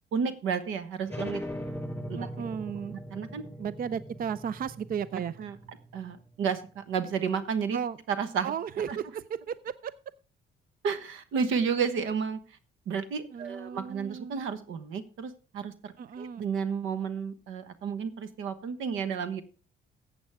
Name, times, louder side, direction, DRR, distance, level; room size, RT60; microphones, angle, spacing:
voice 1, 0.1-1.4 2.1-2.2 3.1-3.4 5.4-5.6 5.9-7.8 8.1-8.5 8.9-9.0 10.8-12.6 12.9-19.4, right 6 dB, 90° right, 12 dB, 1.2 m, -31 dB
sound 1, 1.1-6.3, equal, 5° left, 3.8 m, -40 dB
voice 2, 2.1-3.0 3.6-5.4 7.7-8.0 8.4-9.9 13.3-14.4 16.0-16.5, right 7 dB, 45° right, 17 dB, 0.5 m, -35 dB
14.5 x 8.1 x 3.5 m, 0.36 s
cardioid pair, 90°, 20 cm